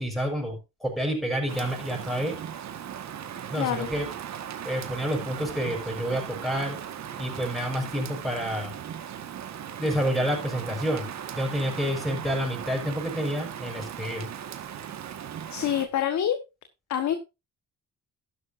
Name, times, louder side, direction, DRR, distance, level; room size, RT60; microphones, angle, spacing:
voice 1, 0.0-2.4 3.5-4.1 4.6-6.8 7.2-8.7 9.8-14.3, equal, ahead, 6.5 m, -29 dB
Rain, 1.5-15.9, right 9 dB, 65° right, 1.7 m, -38 dB
voice 2, 3.6-3.9 15.5-16.4 16.9-17.1, left 10 dB, 70° left, 1.5 m, -26 dB
13.0 x 11.0 x 2.7 m
cardioid pair, 90°, 30 cm